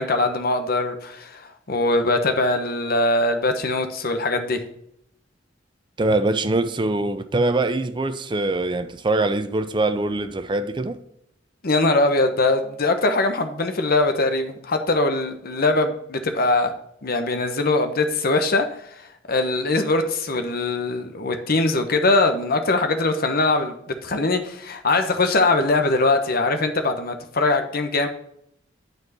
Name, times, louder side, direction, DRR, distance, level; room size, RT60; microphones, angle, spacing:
voice 1, 0.0-4.6 11.6-16.7 17.0-28.1, left 2 dB, 55° left, 1.1 m, -22 dB
voice 2, 6.0-11.0, right 2 dB, 25° right, 0.6 m, -23 dB
9.5 x 4.6 x 5.5 m
head